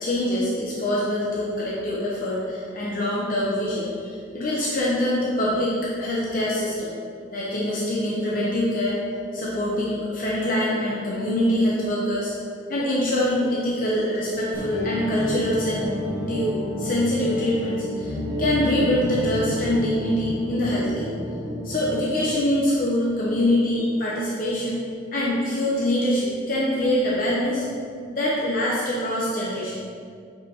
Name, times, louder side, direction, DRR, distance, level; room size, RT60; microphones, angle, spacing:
voice 1, 0.0-6.9 7.3-9.0 9.3-12.3 12.7-15.9 16.3-21.1 21.6-24.8 25.1-27.7 28.1-29.7, left 1 dB, 45° left, -6 dB, 0.9 m, -24 dB
sound 1, 14.5-22.1, left 1 dB, 20° right, 1.3 m, -30 dB
8.4 x 5.0 x 2.9 m, 2.3 s
head